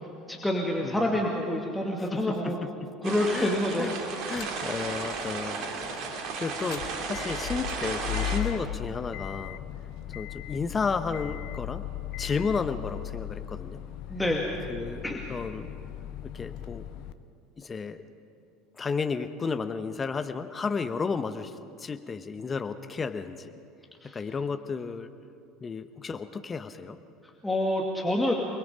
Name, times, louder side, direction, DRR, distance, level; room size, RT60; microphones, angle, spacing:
voice 1, 0.3-2.6 3.0-3.9 14.1-14.5 15.0-15.2 24.0-24.2 27.4-28.3, left 1 dB, 10° left, -1 dB, 2.4 m, -27 dB
voice 2, 2.0-2.9 3.3-3.9 4.3-6.1 6.4-9.6 10.1-11.8 12.2-13.8 14.7-15.0 15.3-15.7 16.2-16.8 17.6-18.0 18.8-23.5 24.1-25.1 25.6-27.0, left 5 dB, 25° left, 10 dB, 1.0 m, -33 dB
sound 1, 3.0-8.4, right 4 dB, 50° right, 2.8 m, -34 dB
sound 2, 4.3-4.8 5.2-5.3 6.5-17.1, left 13 dB, 55° left, 0.8 m, -37 dB
29.0 x 21.0 x 5.1 m, 2.5 s
figure-of-eight pair, 65°, 0 cm